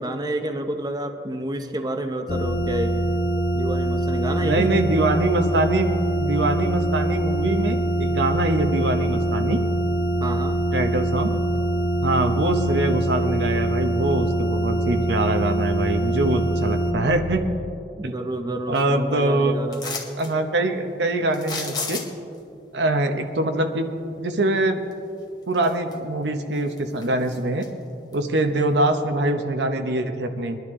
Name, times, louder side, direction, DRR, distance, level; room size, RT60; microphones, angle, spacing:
voice 1, 0.0-3.0 3.5-4.7 10.2-10.6 18.0-19.8, right 1 dB, 25° right, 6 dB, 0.8 m, -29 dB
sound 1, 2.3-16.9, right 1 dB, 55° left, 1.1 m, -23 dB
voice 2, 4.4-9.6 10.7-11.3 12.0-17.5 18.0-18.1 18.7-19.5 20.2-22.0 22.7-23.9 24.2-24.8 25.5-27.7 28.1-30.6, right 2 dB, 80° right, 6 dB, 0.9 m, -23 dB
sound 2, 19.7-20.3 21.3-22.4 24.9-25.0 25.5-26.2 26.6-27.7 28.1-28.2, left 4 dB, 25° left, 1.3 m, -32 dB
21.5 x 11.0 x 3.7 m, 2.5 s
head